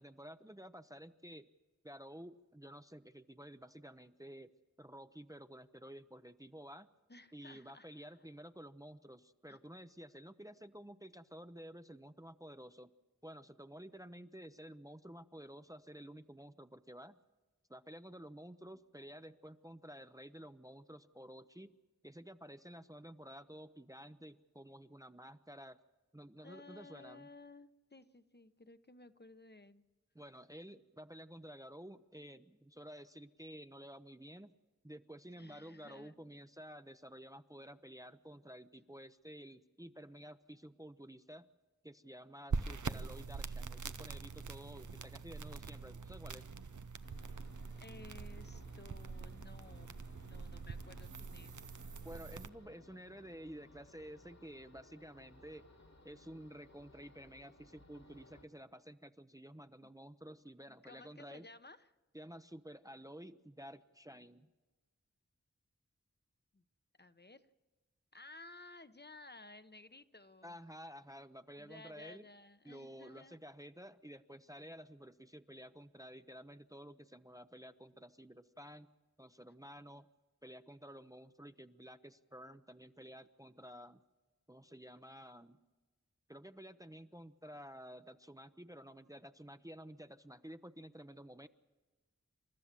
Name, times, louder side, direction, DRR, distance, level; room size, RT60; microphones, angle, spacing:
voice 1, 0.0-1.5 1.8-4.5 4.8-6.9 7.3-12.9 13.2-17.2 17.7-21.7 22.0-25.8 26.1-27.3 30.1-34.5 34.8-41.5 41.8-46.5 52.0-55.7 56.0-61.5 62.1-64.5 70.4-72.3 72.6-78.9 79.2-80.1 80.4-84.0 84.5-85.6 86.3-91.5, equal, 10° right, 10 dB, 0.6 m, -52 dB
voice 2, 7.1-8.1 9.5-9.6 26.4-29.8 35.4-36.2 47.8-51.7 59.8-59.9 60.7-61.9 66.5-66.6 67.0-67.5 68.1-70.6 71.6-73.4, left 2 dB, 35° left, 11 dB, 0.9 m, -56 dB
sound 1, 42.5-52.5, right 4 dB, 90° right, 0.7 m, -44 dB
sound 2, 47.0-58.4, left 2 dB, 65° left, 2.1 m, -61 dB
28.5 x 13.5 x 7.5 m, 1.3 s
wide cardioid pair, 45°, 29 cm